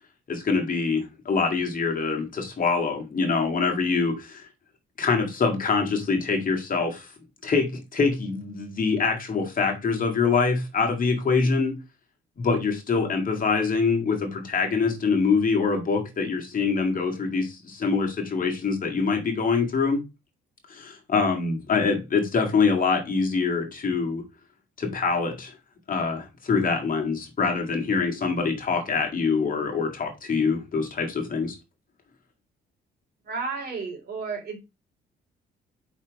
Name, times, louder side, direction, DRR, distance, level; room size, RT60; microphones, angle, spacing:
voice 1, 0.3-4.5 5.0-7.1 7.4-11.8 12.4-20.0 20.7-24.2 24.8-25.6 25.9-31.6, left 4 dB, 45° left, 2.0 m, -24 dB
voice 2, 33.2-34.6, right 4 dB, 50° right, 3.0 m, -32 dB
5.2 x 4.2 x 4.7 m
cardioid pair, 90°, 20 cm